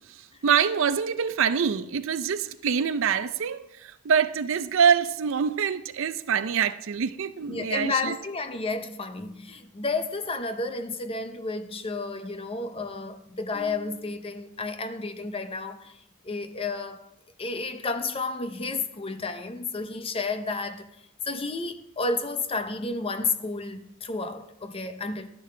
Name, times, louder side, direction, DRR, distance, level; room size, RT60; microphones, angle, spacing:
voice 1, 0.1-8.2, right 7 dB, 60° right, 0.4 m, -25 dB
voice 2, 7.5-17.1 17.4-20.9 21.2-25.3, left 3 dB, 25° left, 0.6 m, -31 dB
12.0 x 10.5 x 3.3 m
head